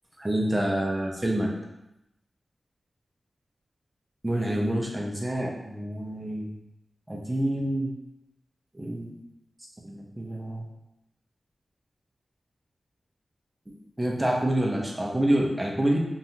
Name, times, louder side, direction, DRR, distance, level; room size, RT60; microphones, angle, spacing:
voice 1, 0.2-1.5 4.2-6.5 7.1-7.9 8.8-9.1 9.8-10.6 14.0-16.0, right 1 dB, 15° right, -1 dB, 0.9 m, -27 dB
5.4 x 2.6 x 2.9 m, 0.89 s
wide cardioid pair, 70°, 0 cm